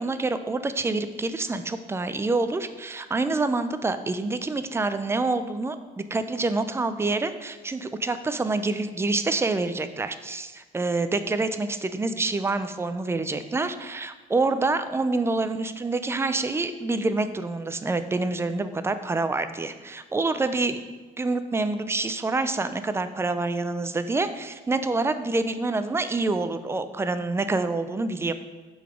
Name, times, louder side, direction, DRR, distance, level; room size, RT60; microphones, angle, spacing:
voice 1, 0.0-20.8 21.2-28.3, right 3 dB, 15° right, 11 dB, 0.4 m, -27 dB
6.4 x 4.0 x 5.0 m, 1.3 s
cardioid pair, 110°, 17 cm